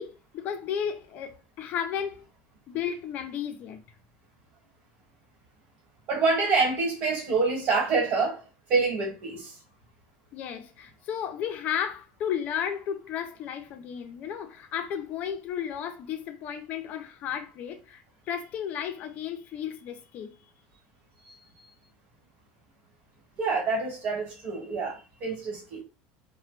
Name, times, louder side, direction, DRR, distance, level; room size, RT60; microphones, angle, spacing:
voice 1, 0.0-2.3 2.7-3.8 10.3-18.0 18.3-20.3, left 8 dB, 40° left, 0.6 m, -33 dB
voice 2, 6.1-8.4 8.7-9.5 23.4-25.8, right 4 dB, 45° right, 1.4 m, -26 dB
3.0 x 2.2 x 3.2 m
cardioid pair, 155°, 4 cm